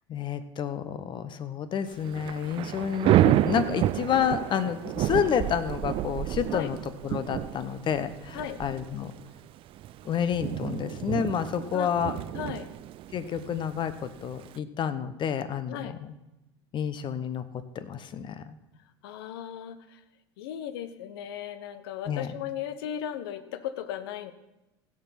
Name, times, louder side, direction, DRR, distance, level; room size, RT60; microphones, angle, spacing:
voice 1, 0.1-6.8 7.0-9.1 10.0-12.1 13.1-16.1 16.7-17.4 17.7-18.6 22.1-22.3, left 8 dB, 35° left, 12 dB, 1.0 m, -29 dB
Thunder / Rain, 1.9-14.6, right 13 dB, 40° right, 0.5 m, -30 dB
voice 2, 12.3-12.7 15.7-16.0 19.0-20.0 20.4-24.3, left 10 dB, 65° left, 12 dB, 1.0 m, -36 dB
16.0 x 7.1 x 5.9 m, 0.95 s
figure-of-eight pair, 75°, 14 cm